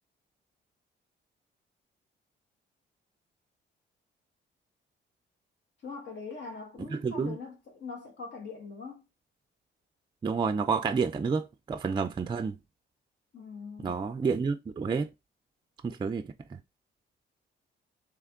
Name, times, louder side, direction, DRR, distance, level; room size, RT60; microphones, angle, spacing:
voice 1, 5.8-9.0 13.3-14.0, left 4 dB, 65° left, 1.4 m, -42 dB
voice 2, 6.9-7.4 10.2-12.6 13.8-15.1 15.8-16.6, right 5 dB, 25° right, 0.4 m, -30 dB
3.3 x 3.3 x 3.6 m
cardioid pair, 90°, 20 cm